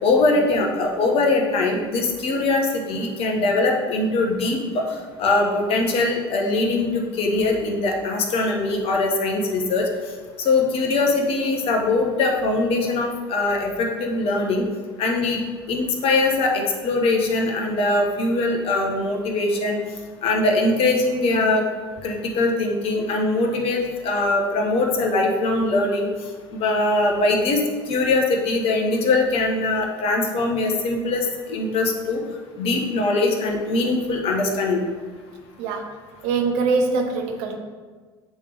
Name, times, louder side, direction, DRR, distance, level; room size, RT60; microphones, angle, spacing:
voice 1, 0.0-9.9 10.4-14.6 15.0-15.4 15.7-19.8 20.2-21.6 22.0-26.1 26.5-27.6 27.9-32.2 32.6-34.8 35.7-35.8, left 2 dB, 50° left, 1 dB, 1.2 m, -22 dB
voice 2, 36.2-37.6, right 4 dB, 60° right, 4 dB, 0.9 m, -23 dB
8.7 x 3.4 x 3.4 m, 1.5 s
figure-of-eight pair, 70°, 13 cm